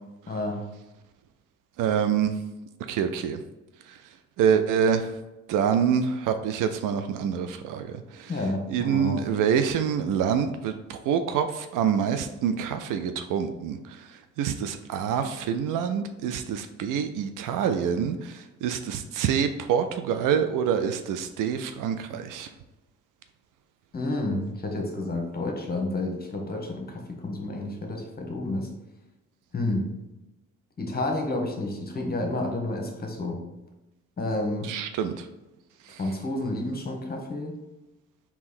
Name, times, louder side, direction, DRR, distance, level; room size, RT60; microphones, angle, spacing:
voice 1, 0.3-0.6 8.3-9.3 23.9-28.7 29.5-29.9 30.8-33.4 34.2-34.7 36.0-37.5, left 2 dB, 25° left, 2 dB, 1.1 m, -30 dB
voice 2, 1.8-2.3 2.9-3.4 4.4-5.1 5.5-8.3 8.7-13.8 14.4-22.5 34.6-35.3 35.9-36.0, right 7 dB, 60° right, 9 dB, 0.5 m, -26 dB
3.5 x 2.9 x 4.4 m, 1.0 s
hypercardioid pair, 45°, 36 cm